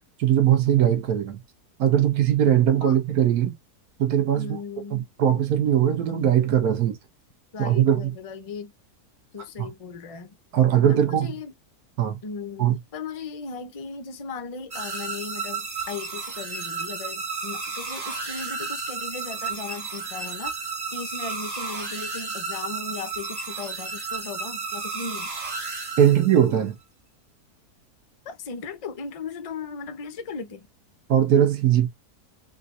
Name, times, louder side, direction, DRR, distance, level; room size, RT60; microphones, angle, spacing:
voice 1, 0.2-1.4 1.8-3.5 4.0-4.6 4.9-7.0 7.6-8.0 9.6-9.7 10.5-11.3 12.0-12.2 12.6-12.8 26.0-26.7 31.1-31.9, right 10 dB, 70° right, 1.5 m, -20 dB
voice 2, 4.4-5.1 7.5-8.7 9.3-10.4 10.9-11.5 12.2-20.5 20.9-25.3 28.2-30.7, left 5 dB, 70° left, 0.3 m, -37 dB
sound 1, 14.7-26.6, right 4 dB, 30° right, 1.0 m, -33 dB
3.8 x 2.7 x 4.0 m
omnidirectional pair, 1.7 m